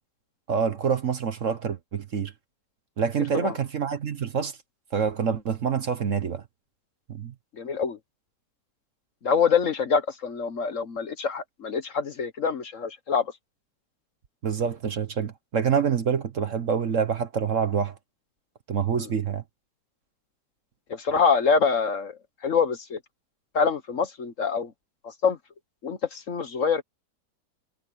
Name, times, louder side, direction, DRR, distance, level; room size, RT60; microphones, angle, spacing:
voice 1, 0.5-2.3 3.0-4.6 4.9-6.4 7.1-7.3 14.4-17.9 18.7-19.4, right 7 dB, 50° right, 1.3 m, -26 dB
voice 2, 7.6-8.0 9.2-13.3 20.9-23.0 23.5-24.7 25.0-25.4 25.8-26.8, left 5 dB, 50° left, 1.3 m, -25 dB
omnidirectional pair, 1.9 m